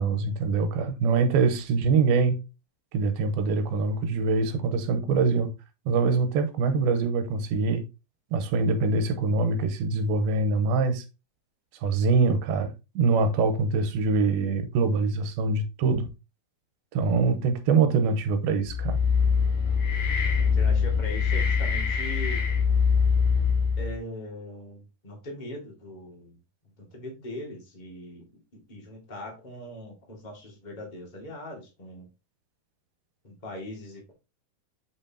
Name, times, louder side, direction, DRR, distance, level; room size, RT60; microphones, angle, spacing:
voice 1, 0.0-2.4 2.9-5.5 5.9-7.8 8.3-11.0 11.8-16.1 16.9-19.0, right 4 dB, 85° right, 2.8 m, -24 dB
sound 1, 18.7-24.0, left 6 dB, 60° left, 2.9 m, -23 dB
voice 2, 20.4-22.4 23.8-26.4 26.8-28.2 28.5-32.1 33.2-34.1, left 1 dB, 20° left, 1.5 m, -40 dB
8.0 x 5.4 x 2.8 m
omnidirectional pair, 4.3 m